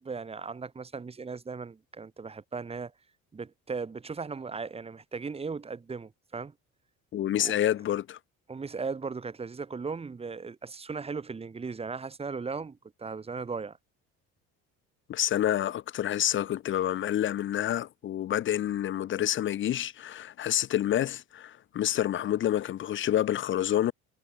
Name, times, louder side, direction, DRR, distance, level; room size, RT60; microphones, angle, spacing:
voice 1, 0.0-2.9 3.3-6.5 7.4-7.5 8.5-13.8, right 4 dB, 20° right, 5.4 m, -37 dB
voice 2, 7.1-8.2 15.1-23.9, left 11 dB, 40° left, 1.0 m, -28 dB
cardioid pair, 150°, 29 cm